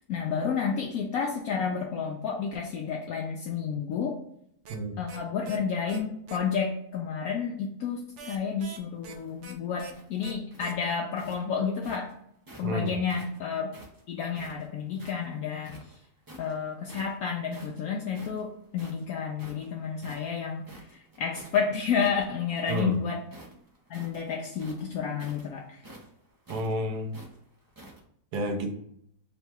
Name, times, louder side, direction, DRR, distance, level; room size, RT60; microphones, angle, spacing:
voice 1, 0.1-4.2 5.0-12.1 12.6-13.7 14.1-15.7 16.4-23.2 23.9-25.8, left 6 dB, 70° left, 0 dB, 1.0 m, -31 dB
sound 1, 4.6-4.8 5.1-5.2 5.4-5.6 5.9-6.0 6.3-6.4 8.2-9.1 9.4-9.5 9.8-9.9 10.2-10.3 10.6-10.7, right 5 dB, 60° right, 0.8 m, -44 dB
sound 2, 8.9-12.7 13.1-15.2 15.6-16.5 16.9-17.2 17.5-21.6 21.9-23.0 23.2-28.0, right 1 dB, 35° right, 0.3 m, -49 dB
voice 2, 26.5-27.1 28.3-28.7, equal, 85° right, 3 dB, 1.3 m, -30 dB
3.8 x 2.3 x 4.3 m, 0.69 s
omnidirectional pair, 1.7 m